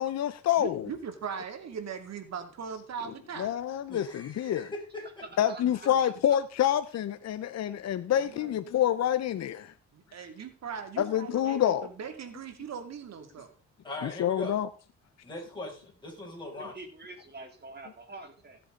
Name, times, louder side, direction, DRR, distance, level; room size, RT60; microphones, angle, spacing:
voice 1, 0.0-0.9 3.4-4.7 5.4-9.7 11.0-11.9 14.0-14.7, left 10 dB, 60° left, 0.9 m, -27 dB
voice 2, 0.6-3.5 8.1-8.5 9.9-13.5, right 6 dB, 60° right, 2.6 m, -39 dB
voice 3, 3.9-5.2 13.8-14.6 15.2-16.7, left 2 dB, 15° left, 6.5 m, -40 dB
voice 4, 5.2-5.9 16.6-18.6, right 2 dB, 35° right, 3.4 m, -46 dB
16.0 x 8.0 x 3.9 m
cardioid pair, 90°, 30 cm